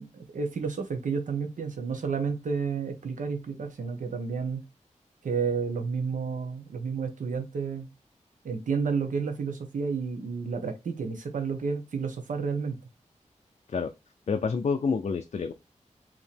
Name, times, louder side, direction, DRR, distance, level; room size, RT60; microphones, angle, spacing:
voice 1, 0.0-4.6 5.2-7.9 8.4-12.8, right 5 dB, 85° right, 1.0 m, -31 dB
voice 2, 14.3-15.5, left 5 dB, 60° left, 0.5 m, -28 dB
5.0 x 2.9 x 3.3 m
wide cardioid pair, 105°, 13 cm